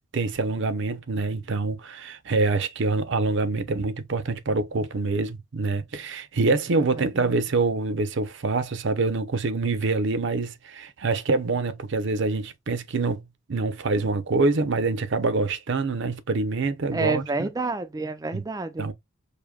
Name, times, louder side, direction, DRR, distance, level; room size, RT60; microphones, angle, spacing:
voice 1, 0.1-13.2 13.5-17.5 18.3-18.4 18.8-18.9, right 3 dB, 65° right, 0.6 m, -25 dB
voice 2, 16.9-18.9, right 3 dB, 20° right, 0.3 m, -29 dB
5.0 x 2.6 x 2.2 m
head